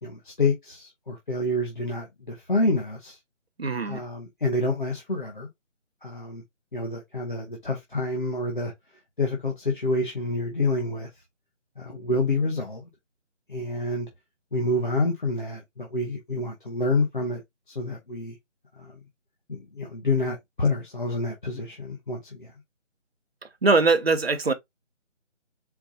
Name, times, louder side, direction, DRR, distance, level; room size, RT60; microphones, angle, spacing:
voice 1, 0.0-3.2 3.8-5.5 6.0-6.4 6.7-8.7 9.2-11.1 11.8-12.9 13.5-14.1 14.5-17.4 17.7-18.4 18.8-19.0 19.5-22.5, left 2 dB, 40° left, 0.9 m, -28 dB
voice 2, 3.6-4.0 23.6-24.5, right 3 dB, 55° right, 0.9 m, -21 dB
4.6 x 2.4 x 4.0 m
figure-of-eight pair, 175°, 37 cm